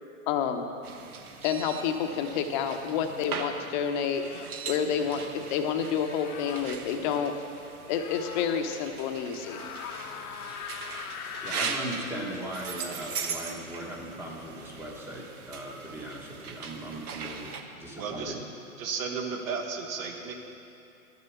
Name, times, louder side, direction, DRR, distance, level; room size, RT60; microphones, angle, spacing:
voice 1, 0.3-0.7 1.4-4.2 4.7-7.3 7.9-9.6, left 7 dB, 35° left, 6 dB, 0.8 m, -29 dB
sound 1, 0.8-17.6, right 5 dB, 90° right, 1.1 m, -40 dB
sound 2, 2.7-2.9 4.1-4.6 6.0-6.7 7.9-8.6 9.4-11.8, left 8 dB, 80° left, 0.9 m, -41 dB
voice 2, 11.4-17.5 17.8-18.4, right 1 dB, 5° right, -1 dB, 1.1 m, -38 dB
voice 3, 17.9-18.4 18.8-20.3, right 5 dB, 65° right, 3 dB, 1.6 m, -34 dB
11.5 x 6.8 x 7.0 m, 2.8 s
hypercardioid pair, 145°, 43 cm